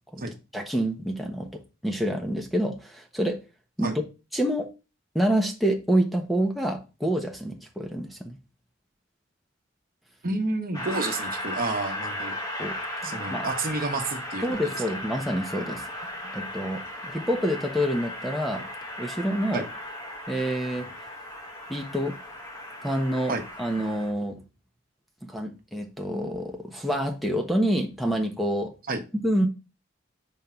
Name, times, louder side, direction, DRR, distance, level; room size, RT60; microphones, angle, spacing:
voice 1, 0.5-3.4 3.8-4.0 4.3-4.7 5.1-8.4 12.6-12.8 13.0-13.5 14.4-15.8 16.3-18.7 19.0-19.6 20.3-20.9 21.7-22.1 22.8-23.3 23.6-24.4 25.2-28.7 29.2-29.5, equal, ahead, 0.9 m, -27 dB
voice 2, 10.2-12.4 13.0-14.7 19.5-19.6 23.3-23.4 28.9-29.0, right 2 dB, 50° right, 1.1 m, -30 dB
Train, 10.7-24.1, left 1 dB, 20° left, 1.8 m, -36 dB
5.3 x 3.7 x 5.7 m
head